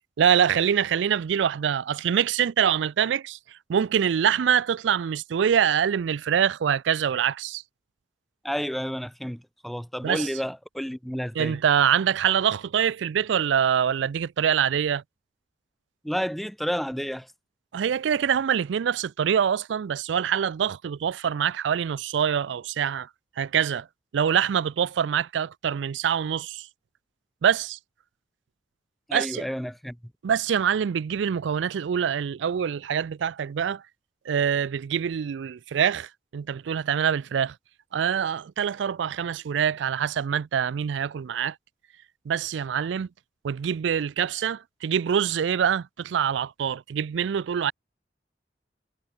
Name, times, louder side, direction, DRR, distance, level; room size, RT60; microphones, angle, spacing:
voice 1, 0.2-3.4 3.7-7.6 10.0-10.3 11.4-15.0 17.7-23.1 23.4-23.9 24.1-26.7 27.4-27.8 29.1-29.5 30.2-33.8 34.3-37.5 37.9-41.6 42.3-43.1 43.4-47.7, right 8 dB, 80° right, 0.4 m, -25 dB
voice 2, 8.4-11.6 16.0-17.3 29.1-30.0, equal, ahead, 0.4 m, -31 dB
head